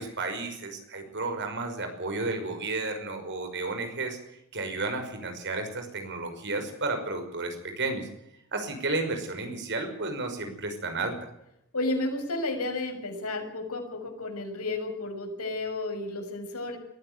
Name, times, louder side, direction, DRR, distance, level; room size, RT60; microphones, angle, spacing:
voice 1, 0.0-4.2 4.5-8.1 8.5-11.3, right 3 dB, 55° right, 6 dB, 5.7 m, -32 dB
voice 2, 11.7-16.8, left 2 dB, 85° left, 4 dB, 6.4 m, -32 dB
22.0 x 15.5 x 8.2 m, 0.79 s
head